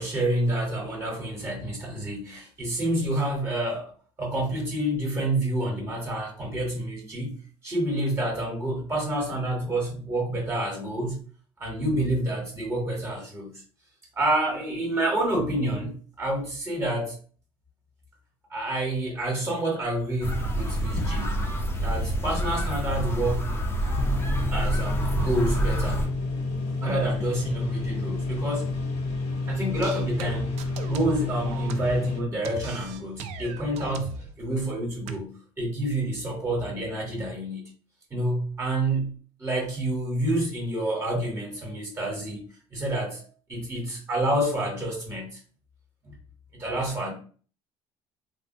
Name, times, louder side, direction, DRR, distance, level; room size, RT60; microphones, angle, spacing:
voice 1, 0.0-3.9 4.2-7.3 7.6-11.2 11.6-13.5 14.2-17.2 18.5-21.4 21.8-23.5 24.5-26.0 26.8-28.7 29.5-30.6 30.9-37.7 38.1-42.4 42.7-43.2 43.5-45.4 46.0-46.1 46.6-47.1, right 1 dB, 25° right, 0.9 m, -28 dB
sound 1, 20.2-26.1, right 1 dB, 20° left, 0.5 m, -27 dB
sound 2, 24.0-32.2, left 3 dB, 75° left, 0.7 m, -30 dB
sound 3, 29.7-32.1 32.4-34.3 35.1-35.2, right 5 dB, 75° right, 0.4 m, -38 dB
3.3 x 2.1 x 2.5 m
cardioid pair, 140°, 11 cm